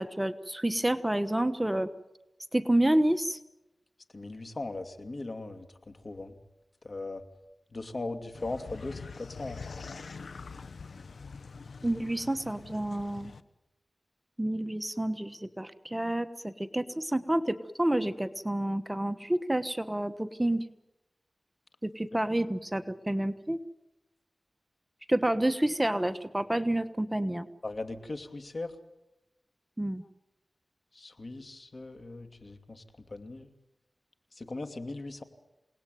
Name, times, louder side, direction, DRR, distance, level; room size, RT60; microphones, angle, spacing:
voice 1, 0.0-1.9 2.5-3.4 11.8-13.3 14.4-20.6 21.8-23.6 25.1-27.5 29.8-30.0, right 1 dB, 15° right, 11 dB, 1.2 m, -29 dB
voice 2, 4.1-5.7 6.0-6.3 6.8-7.2 7.7-9.6 27.6-28.7 30.9-32.8 33.1-33.5 34.4-35.2, left 2 dB, 55° left, 7 dB, 2.6 m, -38 dB
sound 1, 8.3-13.4, left 4 dB, 85° left, 1.1 m, -44 dB
28.5 x 19.0 x 9.3 m, 0.97 s
wide cardioid pair, 50°, 0 cm